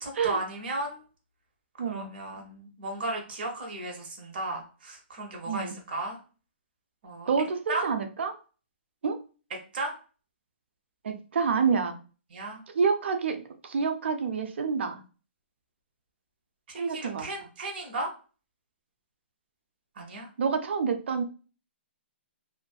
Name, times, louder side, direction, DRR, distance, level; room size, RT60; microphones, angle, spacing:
voice 1, 0.0-1.0 1.8-6.2 7.0-7.3 7.7-7.8 9.7-9.9 12.3-12.6 16.7-18.1 20.0-20.3, right 2 dB, 55° right, 1 dB, 1.0 m, -35 dB
voice 2, 7.3-8.4 9.0-9.2 11.0-12.0 12.7-15.0 16.8-17.3 20.4-21.2, right 5 dB, 75° right, 7 dB, 0.5 m, -28 dB
2.5 x 2.5 x 2.3 m, 0.36 s
hypercardioid pair, 160°, 6 cm